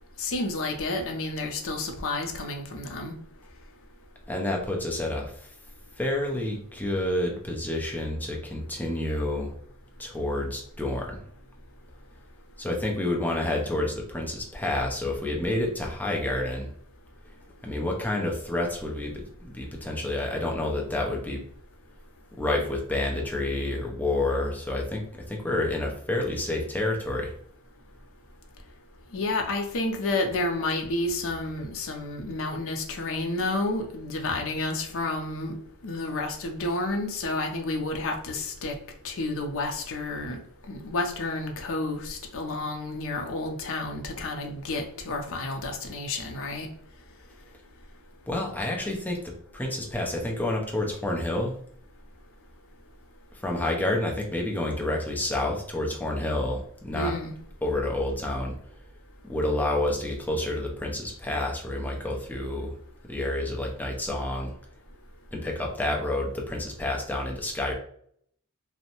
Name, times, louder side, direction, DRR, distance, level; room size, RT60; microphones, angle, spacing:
voice 1, 0.2-3.1 29.1-35.6 35.8-38.7 39.0-40.4 40.7-46.7 56.9-57.3, left 2 dB, 65° left, 3 dB, 0.5 m, -30 dB
voice 2, 4.3-5.3 6.0-9.5 10.0-11.2 12.6-16.7 17.6-21.4 22.4-27.3 48.3-51.5 53.4-57.1 57.6-58.5 59.3-62.7 63.1-64.5 65.3-67.7, left 1 dB, 10° left, -1 dB, 0.5 m, -29 dB
2.6 x 2.1 x 2.8 m, 0.62 s
head